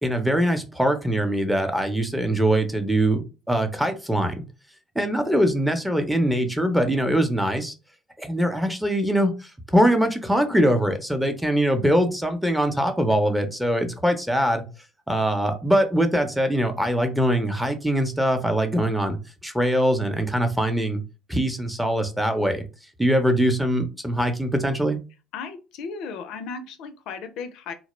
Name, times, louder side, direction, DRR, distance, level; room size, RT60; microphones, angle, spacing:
voice 1, 0.0-3.2 3.5-4.4 5.0-7.7 8.2-14.6 15.1-19.2 19.4-21.0 21.3-22.7 23.0-25.0, equal, 5° right, 6 dB, 0.6 m, -22 dB
voice 2, 25.3-27.7, left 5 dB, 70° left, 8 dB, 0.4 m, -35 dB
2.3 x 2.0 x 3.0 m, 0.30 s
hypercardioid pair, 70°, 0 cm